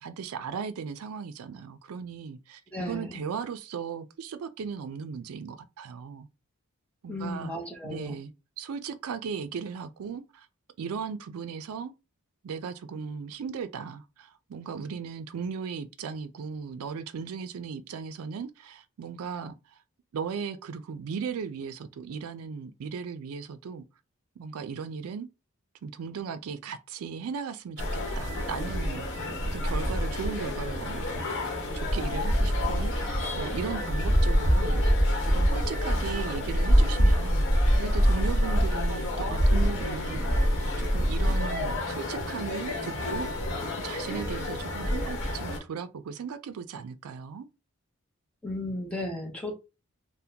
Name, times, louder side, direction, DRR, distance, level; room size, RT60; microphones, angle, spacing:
voice 1, 0.0-6.3 7.0-7.5 7.8-8.3 8.6-10.5 10.8-11.9 12.4-19.7 20.1-23.8 24.4-25.3 25.8-34.9 35.2-40.5 40.8-47.5, right 6 dB, 75° right, 0.4 m, -37 dB
voice 2, 2.7-3.2 7.1-8.2 48.4-49.5, left 1 dB, 5° left, 0.7 m, -35 dB
sound 1, 27.8-45.6, equal, 55° left, 1.1 m, -26 dB
3.5 x 2.1 x 2.8 m
head